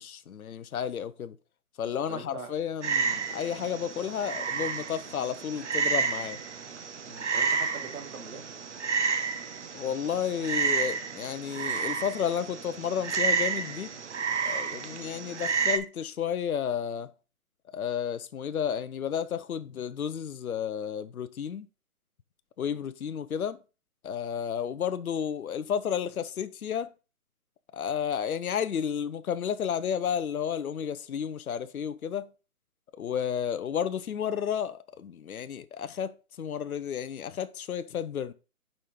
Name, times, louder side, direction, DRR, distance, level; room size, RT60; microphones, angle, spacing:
voice 1, 0.0-1.4 1.8-6.4 9.7-13.9 14.4-17.1 17.7-21.7 22.6-23.6 24.0-26.9 27.7-32.3 33.0-38.3, left 8 dB, 70° left, 0.7 m, -32 dB
voice 2, 1.8-2.5 7.0-8.4 14.9-15.0 22.7-22.8, right 4 dB, 70° right, 2.2 m, -43 dB
Frog, 2.8-15.8, right 5 dB, 50° right, 0.8 m, -31 dB
5.4 x 5.1 x 4.3 m
hypercardioid pair, 165°, 45 cm